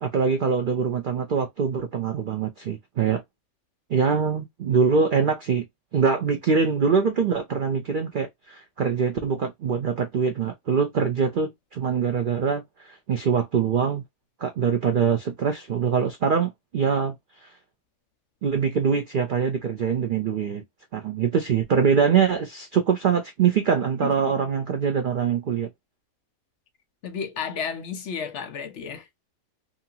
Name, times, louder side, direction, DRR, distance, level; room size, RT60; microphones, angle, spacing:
voice 1, 0.0-3.2 3.9-5.6 5.9-14.0 14.4-17.2 17.4-17.5 18.4-20.6 20.9-25.7, right 6 dB, 70° right, 0.4 m, -23 dB
voice 2, 24.0-24.3 27.0-29.1, left 6 dB, 60° left, 0.9 m, -32 dB
2.8 x 2.4 x 2.7 m
omnidirectional pair, 1.5 m